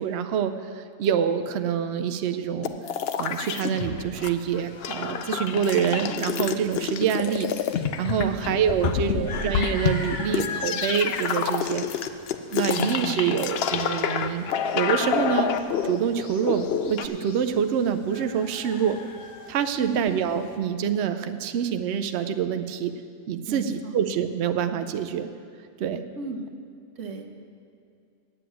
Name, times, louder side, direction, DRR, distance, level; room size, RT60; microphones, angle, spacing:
voice 1, 0.0-2.8 3.2-7.5 8.0-11.9 12.5-14.5 14.7-15.5 15.8-19.0 19.5-22.9 23.3-25.3 25.8-26.0, right 8 dB, 75° right, 9 dB, 0.6 m, -26 dB
sound 1, 2.6-4.3 4.6-17.1, left 7 dB, 90° left, 0.5 m, -28 dB
sound 2, 4.1-20.6, left 4 dB, 50° left, 1.1 m, -42 dB
voice 2, 8.2-8.5 8.8-9.5 19.7-20.0 23.5-24.0 26.2-26.5 27.0-27.2, right 4 dB, 55° right, 4 dB, 1.2 m, -35 dB
9.0 x 7.7 x 9.2 m, 2.4 s
omnidirectional pair, 1.7 m